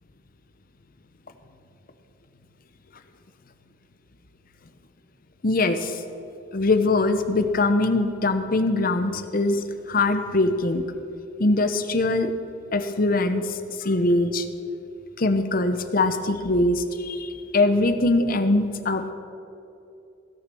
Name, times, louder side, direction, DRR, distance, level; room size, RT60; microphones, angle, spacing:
voice 1, 5.4-5.9 6.5-10.8 11.4-12.3 12.7-14.4 15.2-19.1, left 2 dB, 50° left, 9 dB, 0.8 m, -22 dB
16.5 x 6.6 x 6.8 m, 2.7 s
head